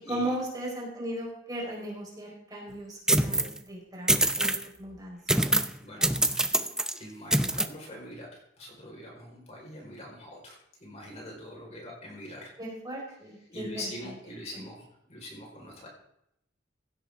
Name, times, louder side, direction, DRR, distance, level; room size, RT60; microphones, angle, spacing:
voice 1, 0.1-4.5 4.8-5.4 6.0-6.4 12.6-13.9 14.5-14.6, right 1 dB, 20° right, -4 dB, 4.6 m, -37 dB
sound 1, 3.1-3.6 4.1-4.6 5.3-5.8 6.0-6.9 7.3-7.7, right 1 dB, 5° right, 0.5 m, -24 dB
voice 2, 5.8-6.1 6.9-8.3 8.6-12.5 13.5-15.9, left 1 dB, 35° left, -2 dB, 4.7 m, -43 dB
16.5 x 12.0 x 3.7 m, 0.77 s
head